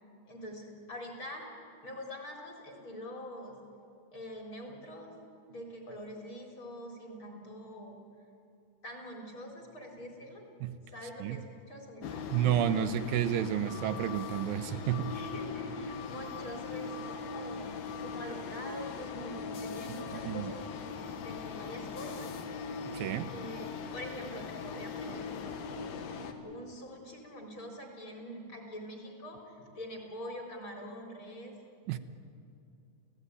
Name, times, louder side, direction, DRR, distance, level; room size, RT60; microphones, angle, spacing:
voice 1, 0.3-1.5 1.8-3.6 4.1-5.1 5.5-8.0 8.8-10.4 10.9-12.3 15.0-20.6 21.2-22.3 23.3-26.0 26.4-31.5, equal, 35° left, 1 dB, 4.7 m, -44 dB
sound 1, 12.0-26.3, left 5 dB, 85° left, 3.4 m, -40 dB
voice 2, 12.3-15.1 20.2-20.5 22.9-23.3 31.9-32.0, right 11 dB, 85° right, 9 dB, 2.6 m, -30 dB
29.5 x 16.5 x 9.8 m, 2.5 s
omnidirectional pair, 4.1 m